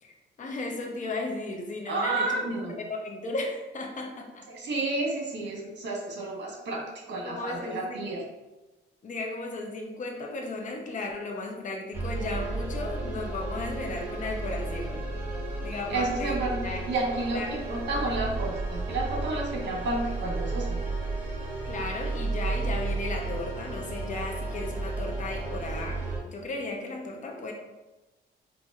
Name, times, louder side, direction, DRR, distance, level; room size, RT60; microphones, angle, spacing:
voice 1, 0.0-2.6 2.9-4.4 7.2-8.1 9.0-15.1 15.6-16.8 17.3-17.7 21.7-27.5, left 2 dB, 40° left, 1 dB, 0.7 m, -35 dB
voice 2, 1.9-2.8 4.5-6.8 7.1-8.2 15.9-20.8, right 2 dB, 60° right, -1 dB, 1.2 m, -31 dB
sound 1, 11.9-26.2, right 2 dB, 10° right, 1.5 m, -33 dB
4.1 x 2.7 x 2.4 m, 1.1 s
cardioid pair, 90°, 20 cm